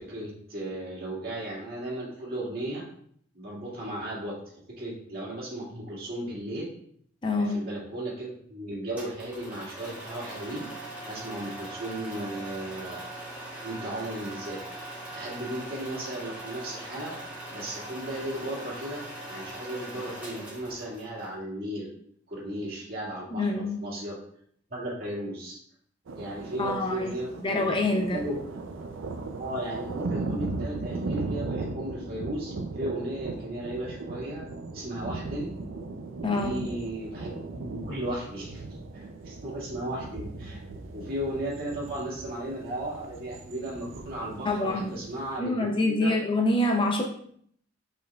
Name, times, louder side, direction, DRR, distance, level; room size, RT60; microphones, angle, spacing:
voice 1, 0.0-2.8 3.3-4.4 4.8-6.7 7.4-10.7 11.1-13.1 13.6-14.6 15.1-17.2 17.5-21.9 22.3-24.2 24.7-25.6 26.2-27.7 28.1-28.5 29.4-34.4 34.7-35.6 36.2-38.6 38.9-40.6 40.9-46.1, right 1 dB, 50° right, -6 dB, 2.0 m, -35 dB
voice 2, 7.2-7.6 23.3-23.8 26.6-27.1 27.4-28.2 36.2-36.7 44.4-44.9 45.4-47.0, left 2 dB, 25° left, 3 dB, 0.5 m, -26 dB
sound 1, 9.0-21.3, right 1 dB, 10° right, 2.0 m, -41 dB
sound 2, 26.1-45.4, right 3 dB, 75° right, 0.5 m, -37 dB
5.1 x 4.4 x 2.3 m, 0.64 s
head